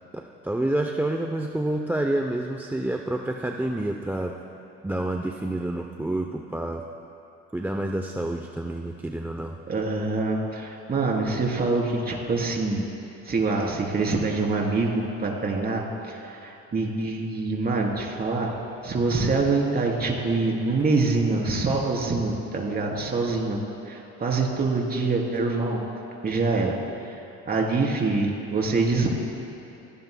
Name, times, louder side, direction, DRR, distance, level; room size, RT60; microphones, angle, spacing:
voice 1, 0.1-4.3 4.8-6.8 7.5-9.5, right 1 dB, 5° right, 2 dB, 0.6 m, -28 dB
voice 2, 9.7-12.8 13.2-18.5 18.8-25.8 26.2-26.8 27.0-29.1, right 3 dB, 30° right, -1 dB, 3.3 m, -25 dB
26.5 x 17.0 x 2.2 m, 2.9 s
cardioid pair, 100°, 29 cm